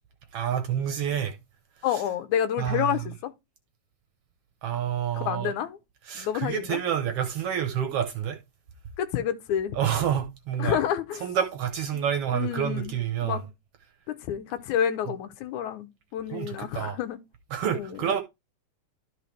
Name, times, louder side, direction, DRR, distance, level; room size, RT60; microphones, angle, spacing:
voice 1, 0.3-1.4 2.6-3.0 4.6-5.5 6.1-8.4 9.7-10.8 11.2-13.4 16.3-17.0 17.5-18.2, right 9 dB, 65° right, 1.7 m, -28 dB
voice 2, 1.8-3.3 5.1-5.8 6.2-6.8 9.0-9.8 10.6-11.3 11.9-12.0 12.3-13.0 13.2-13.4 14.1-17.2 17.7-18.2, left 9 dB, 85° left, 2.3 m, -29 dB
12.0 x 4.8 x 3.3 m
omnidirectional pair, 3.4 m